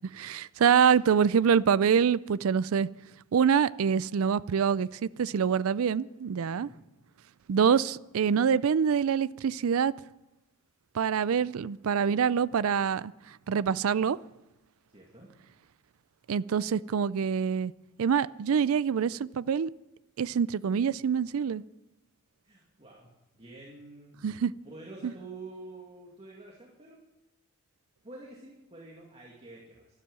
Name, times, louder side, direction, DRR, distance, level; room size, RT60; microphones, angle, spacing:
voice 1, 0.1-2.9 3.3-6.7 7.5-9.9 10.9-13.1 13.5-14.2 16.3-17.7 18.0-19.7 20.2-21.6 24.2-24.5, right 7 dB, 70° right, 0.4 m, -25 dB
voice 2, 6.5-6.8 14.9-15.3 22.4-24.1 24.6-27.0 28.0-29.9, right 2 dB, 25° right, 2.3 m, -48 dB
13.0 x 11.5 x 7.5 m
head